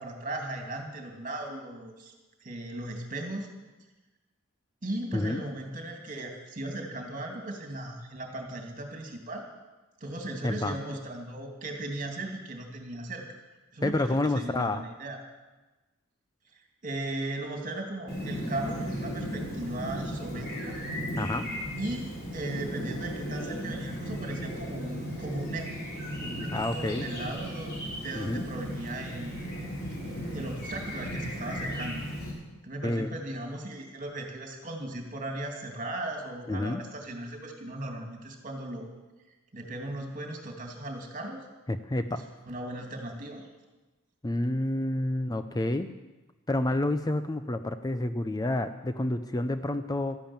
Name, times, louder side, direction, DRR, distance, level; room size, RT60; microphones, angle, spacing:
voice 1, 0.0-2.1 2.4-3.5 4.8-9.4 10.0-13.3 13.7-15.2 16.8-20.8 21.8-25.7 26.2-29.3 30.1-32.0 32.6-38.9 39.5-41.4 42.5-43.5, right 1 dB, 40° right, 2 dB, 2.8 m, -37 dB
voice 2, 5.1-5.4 10.4-10.8 13.8-14.8 21.2-21.5 26.5-27.1 28.1-28.5 32.8-33.1 36.5-36.8 41.7-42.3 44.2-45.9 46.5-50.2, left 1 dB, 20° left, 10 dB, 0.5 m, -29 dB
Chirp tweet, 18.1-32.3, equal, 50° left, 5.2 m, -36 dB
13.5 x 11.0 x 8.8 m, 1.2 s
head